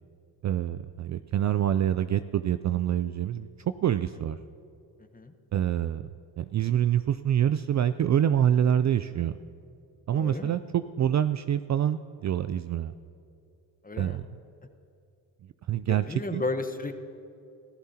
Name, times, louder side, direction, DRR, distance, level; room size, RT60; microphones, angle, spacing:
voice 1, 0.4-3.5 3.8-4.4 5.5-6.0 6.4-9.4 10.1-12.9 14.0-14.4 15.7-16.4, right 10 dB, 40° right, 12 dB, 0.4 m, -26 dB
voice 2, 10.1-10.6 13.8-14.2 15.9-16.9, left 3 dB, 20° left, 7 dB, 1.2 m, -33 dB
25.5 x 14.5 x 2.9 m, 2.7 s
supercardioid pair, 65°, 47 cm